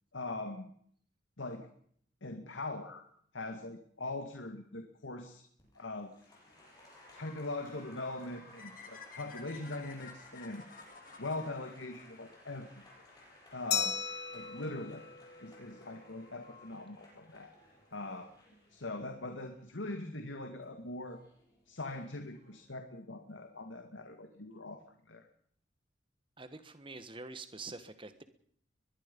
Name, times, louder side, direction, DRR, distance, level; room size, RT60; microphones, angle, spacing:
voice 1, 0.1-0.7 1.4-1.7 2.2-3.0 3.3-5.4 5.7-6.1 7.1-10.6 11.2-12.8 13.5-13.9 14.3-15.0 15.4-17.5 17.9-18.3 18.7-21.2 21.7-25.3, left 2 dB, 85° left, 5 dB, 2.2 m, -41 dB
Applause, 5.6-22.7, left 1 dB, 20° left, 8.0 m, -59 dB
sound 1, 8.6-12.7, left 5 dB, 45° left, 3.0 m, -52 dB
Glass, 13.7-16.2, left 7 dB, 65° left, 3.2 m, -37 dB
voice 2, 26.4-28.2, right 3 dB, 25° right, 10 dB, 1.6 m, -46 dB
22.5 x 21.5 x 5.5 m, 0.63 s
head